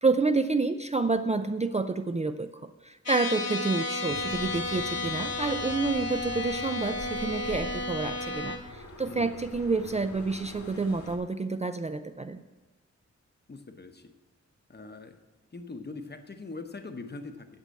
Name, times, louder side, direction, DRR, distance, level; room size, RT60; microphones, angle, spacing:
voice 1, 0.0-12.4, right 3 dB, 25° right, 9 dB, 0.3 m, -29 dB
sound 1, 3.1-8.6, left 2 dB, 60° left, 1.3 m, -33 dB
sound 2, 4.1-11.2, left 2 dB, 75° left, 1.6 m, -45 dB
voice 2, 9.1-9.4 13.5-14.1 14.7-15.2 15.5-17.5, left 3 dB, 35° left, 7 dB, 0.8 m, -42 dB
8.3 x 7.4 x 7.5 m, 1.2 s
wide cardioid pair, 115°, 29 cm